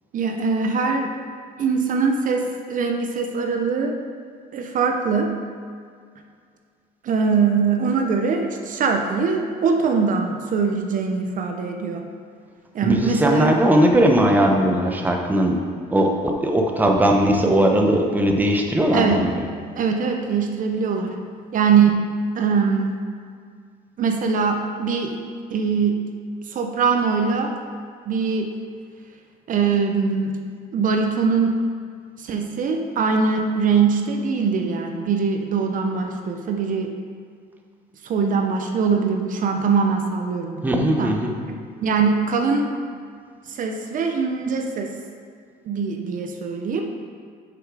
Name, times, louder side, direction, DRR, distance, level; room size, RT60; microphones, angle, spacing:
voice 1, 0.1-1.1 1.6-4.0 4.5-5.3 7.0-12.0 12.7-13.5 18.9-19.2 19.8-21.1 21.5-22.0 22.4-22.9 24.0-25.2 25.5-26.0 26.5-27.5 28.1-28.5 29.5-30.3 30.7-31.6 32.2-36.9 38.0-41.1 41.8-42.7 43.5-44.9 45.7-46.9, right 5 dB, 50° right, 3 dB, 0.7 m, -22 dB
voice 2, 12.8-15.6 15.9-19.5 40.6-41.3, right 1 dB, 10° right, 1 dB, 0.8 m, -19 dB
6.3 x 6.0 x 4.8 m, 2.1 s
cardioid pair, 110°, 17 cm